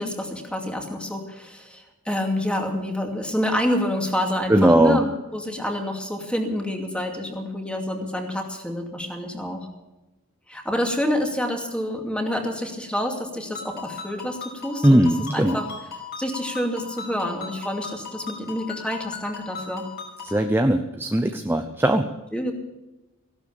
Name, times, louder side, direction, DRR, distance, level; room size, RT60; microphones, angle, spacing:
voice 1, 0.0-9.7 10.5-15.0 15.3-15.7 16.2-19.9 22.3-22.5, left 1 dB, 5° left, 2 dB, 2.6 m, -28 dB
voice 2, 4.5-5.0 14.8-15.6 20.2-22.1, right 1 dB, 10° right, 6 dB, 0.7 m, -19 dB
Ringtone, 13.5-20.4, left 6 dB, 45° left, 5.6 m, -38 dB
16.5 x 12.0 x 7.1 m, 1.0 s
head